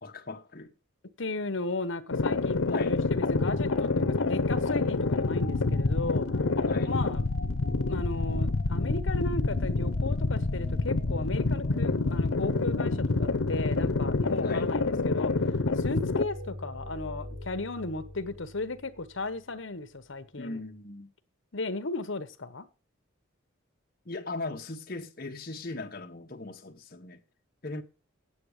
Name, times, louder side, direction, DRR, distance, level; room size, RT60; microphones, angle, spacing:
voice 1, 0.0-0.7 2.7-3.0 6.6-7.0 14.4-14.7 20.4-21.1 24.0-27.2 27.6-27.8, left 2 dB, 45° left, 1.1 m, -38 dB
voice 2, 1.2-6.3 6.8-7.2 7.9-20.6 21.5-22.7, left 2 dB, 70° left, 1.0 m, -35 dB
sound 1, 2.1-16.2, left 3 dB, 90° left, 0.8 m, -27 dB
sound 2, 3.2-19.5, left 1 dB, 50° right, 4.6 m, -41 dB
8.5 x 8.2 x 6.5 m
head